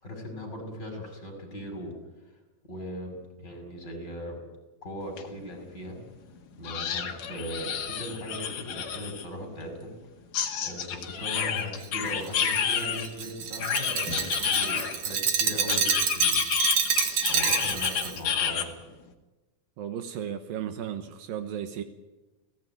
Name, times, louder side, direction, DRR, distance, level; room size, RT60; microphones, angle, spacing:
voice 1, 0.0-1.9 2.6-4.4 4.8-6.0 6.6-9.9 10.6-16.4 17.3-18.7, equal, 25° left, 3 dB, 7.3 m, -38 dB
sound 1, 5.2-5.3 5.6-5.7 6.6-9.2 10.3-13.1 13.6-15.1 15.7-18.7, left 7 dB, 60° left, 3.4 m, -29 dB
Glass, 11.8-18.2, right 7 dB, 55° right, 2.9 m, -28 dB
voice 2, 19.8-21.8, right 9 dB, 75° right, 9 dB, 2.9 m, -34 dB
30.0 x 18.0 x 9.4 m, 1.2 s
omnidirectional pair, 4.3 m